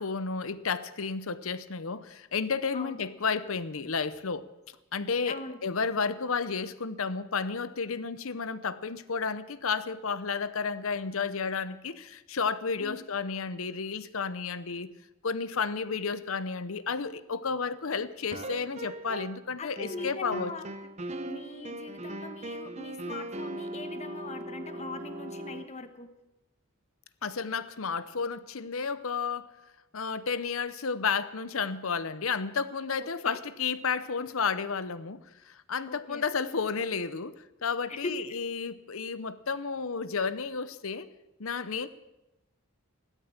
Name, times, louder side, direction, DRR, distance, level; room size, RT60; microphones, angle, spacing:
voice 1, 0.0-4.5 4.9-14.9 15.2-20.5 27.2-29.5 29.9-41.1 41.4-41.9, left 5 dB, 75° left, 15 dB, 0.8 m, -32 dB
voice 2, 5.2-5.6 12.8-13.0 19.6-20.6 21.2-26.1 33.2-33.4 35.9-36.2 37.9-38.1, left 2 dB, 30° left, 8 dB, 1.2 m, -40 dB
sound 1, 18.3-19.5 19.8-25.6, right 1 dB, 30° right, 0.9 m, -39 dB
15.5 x 12.5 x 7.2 m, 0.99 s
head